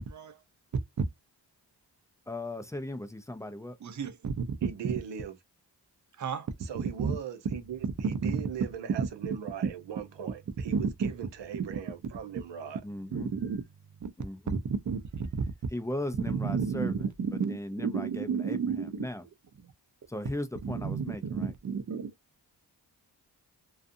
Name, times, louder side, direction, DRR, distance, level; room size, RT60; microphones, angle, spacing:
voice 1, 0.1-0.4 1.0-1.1 3.8-4.4 4.8-4.9 6.2-6.5 7.0-7.2 8.2-8.3 10.7-11.1 13.1-13.6 14.0-14.1 14.5-15.3 16.3-19.1 19.6-19.7 20.6-22.1, right 5 dB, 45° right, 0.5 m, -31 dB
voice 2, 2.3-3.8 12.8-13.3 14.2-14.6 15.7-19.2 20.1-21.5, left 1 dB, 10° left, 0.3 m, -37 dB
voice 3, 4.6-5.3 6.6-12.8, right 9 dB, 90° right, 0.7 m, -39 dB
2.5 x 2.4 x 2.5 m
wide cardioid pair, 105°, 42 cm